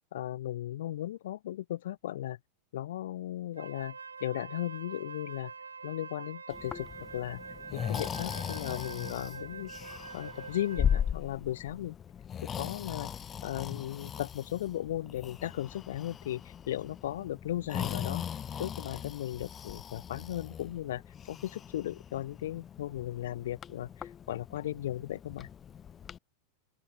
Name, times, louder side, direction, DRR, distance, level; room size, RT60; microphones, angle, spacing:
voice 1, 0.1-2.4 2.7-5.5 5.8-7.4 7.7-9.7 10.1-12.0 12.4-13.1 13.4-18.2 18.6-21.0 21.3-25.5, left 13 dB, 60° left, 0.6 m, -36 dB
Wind instrument woodwind instrument, 3.5-11.2, right 5 dB, 75° right, 4.1 m, -45 dB
Breathing, 6.5-26.2, left 8 dB, 25° left, 0.7 m, -39 dB
open air
figure-of-eight pair, 90°, 0 cm